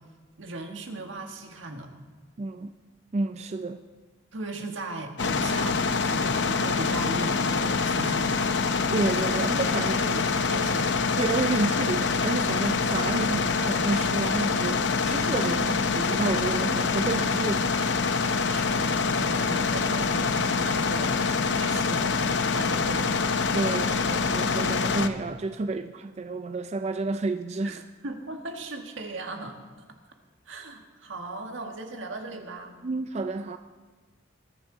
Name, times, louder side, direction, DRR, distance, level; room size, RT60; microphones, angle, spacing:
voice 1, 0.4-1.9 4.3-8.4 9.3-11.0 15.4-15.9 16.7-17.0 18.5-21.2 21.5-23.3 27.6-27.8 28.0-29.6 30.5-32.7, right 2 dB, 85° right, 4 dB, 1.6 m, -37 dB
voice 2, 2.4-2.7 3.1-3.8 8.9-10.0 11.2-17.7 23.5-27.8 32.8-33.6, right 3 dB, 35° right, 9 dB, 0.4 m, -30 dB
sound 1, 5.2-25.1, left 4 dB, 65° left, 0.7 m, -25 dB
22.0 x 10.0 x 3.9 m, 1.4 s
head